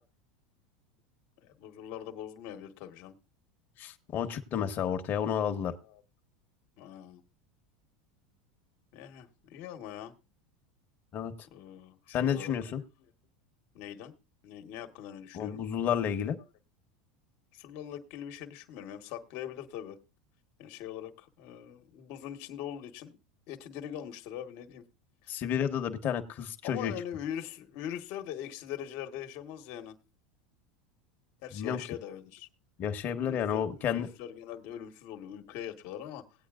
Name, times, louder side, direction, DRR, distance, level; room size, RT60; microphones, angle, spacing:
voice 1, 1.4-3.1 5.3-6.0 6.8-7.2 8.9-10.1 11.5-12.8 13.7-14.1 14.4-15.6 17.5-20.0 20.6-23.2 23.5-24.8 25.2-25.3 26.6-30.0 31.4-32.5 33.2-36.2, left 10 dB, 60° left, 7 dB, 1.4 m, -42 dB
voice 2, 3.8-5.7 11.1-11.3 12.1-12.8 15.3-16.4 25.3-26.9 31.5-31.8 32.8-34.1, left 8 dB, 40° left, 6 dB, 1.3 m, -31 dB
18.0 x 8.7 x 2.5 m, 0.27 s
hypercardioid pair, 105°, 5 cm